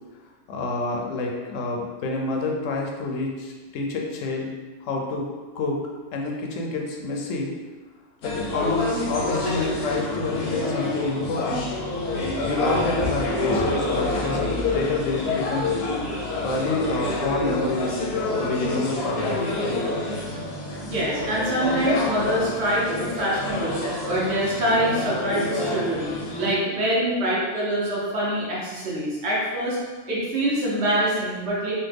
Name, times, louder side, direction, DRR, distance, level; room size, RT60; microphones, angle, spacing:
voice 1, 0.5-4.5 4.8-5.2 5.5-5.8 6.1-7.5 8.2-11.7 12.4-15.7 16.4-17.9 18.4-19.4, left 3 dB, 90° left, 0 dB, 1.0 m, -28 dB
sound 1, 8.2-26.5, left 2 dB, 65° left, 0.8 m, -27 dB
voice 2, 20.8-26.1 26.4-29.8 30.1-31.7, right 1 dB, 60° right, -6 dB, 1.1 m, -25 dB
3.3 x 2.2 x 3.3 m, 1.3 s
omnidirectional pair, 1.3 m